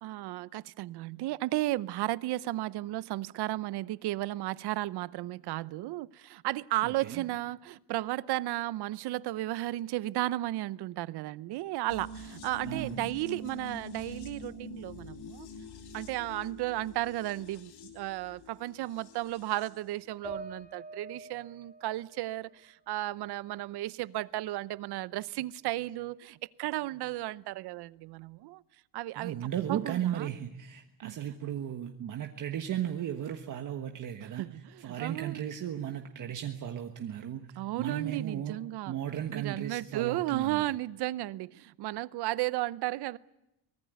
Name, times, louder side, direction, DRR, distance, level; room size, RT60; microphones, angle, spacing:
voice 1, 0.0-15.5 15.9-28.6 28.9-29.4 29.7-30.3 31.0-31.2 34.4-35.4 37.6-38.9 39.3-43.2, right 16 dB, 75° right, 0.8 m, -34 dB
voice 2, 6.8-7.2 12.6-13.1 29.1-34.5 34.8-38.6 38.9-40.6, right 10 dB, 50° right, 1.5 m, -35 dB
sound 1, 11.9-19.8 20.1-20.2, left 2 dB, 75° left, 3.4 m, -46 dB
sound 2, 20.2-23.7 24.0-25.1, right 4 dB, 20° right, 4.0 m, -47 dB
24.0 x 19.0 x 9.4 m
cardioid pair, 145°, 39 cm